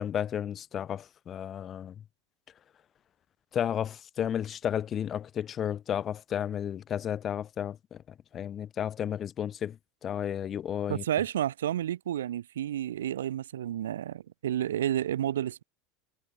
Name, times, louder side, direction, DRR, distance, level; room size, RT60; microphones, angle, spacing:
voice 1, 0.0-1.9 3.5-8.0 8.3-11.0, left 9 dB, 35° left, 1.4 m, -33 dB
voice 2, 10.9-15.6, right 11 dB, 90° right, 1.0 m, -31 dB
hypercardioid pair, 105°, 0 cm